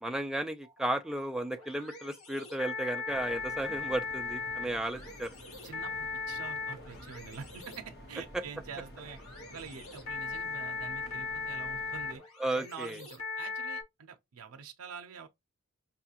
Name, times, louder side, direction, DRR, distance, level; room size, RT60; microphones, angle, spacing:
voice 1, 0.0-5.4 8.3-8.4 12.4-13.0, right 1 dB, 5° right, 0.4 m, -34 dB
sound 1, 0.6-13.8, left 4 dB, 75° left, 1.6 m, -39 dB
sound 2, 3.1-12.2, equal, 50° left, 1.0 m, -51 dB
voice 2, 5.6-9.2 9.5-12.2 12.5-15.3, right 5 dB, 80° right, 0.6 m, -46 dB
5.5 x 2.4 x 2.8 m
head